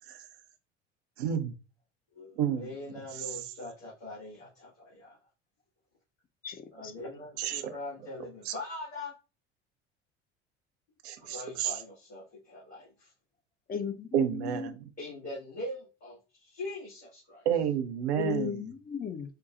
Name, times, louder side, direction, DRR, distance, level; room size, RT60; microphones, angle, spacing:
voice 1, 1.2-1.5 2.4-2.7 7.4-7.7 8.5-8.6 11.0-11.7 14.1-14.7 17.5-18.5, right 9 dB, 70° right, 0.7 m, -30 dB
voice 2, 2.1-5.2 6.7-9.1 11.2-13.1 15.0-17.5, left 2 dB, 80° left, 2.1 m, -42 dB
voice 3, 13.7-14.7 18.2-19.4, left 6 dB, 25° left, 0.7 m, -35 dB
5.6 x 2.3 x 2.4 m
hypercardioid pair, 65°, 33 cm